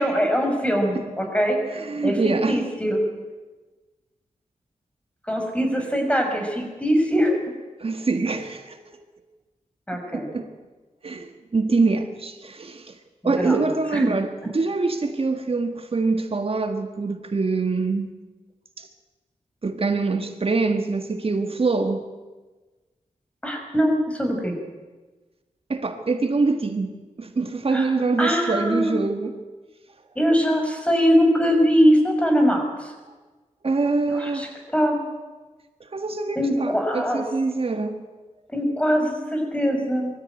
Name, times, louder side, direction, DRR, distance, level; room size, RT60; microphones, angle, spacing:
voice 1, 0.0-2.2 2.5-3.0 5.2-7.4 9.9-10.3 13.2-14.2 14.4-14.5 23.4-24.6 27.7-27.9 28.2-29.0 30.2-32.9 34.1-34.5 34.7-35.0 36.4-37.3 38.5-40.1, equal, 10° left, 5.5 m, -22 dB
voice 2, 1.7-2.6 7.8-8.8 10.1-10.5 11.0-13.0 13.2-18.1 18.8-18.9 19.6-22.0 25.7-26.9 27.2-29.4 33.6-34.5 35.8-38.0, right 3 dB, 45° right, 1.7 m, -24 dB
23.0 x 14.0 x 9.1 m
wide cardioid pair, 75°, 13 cm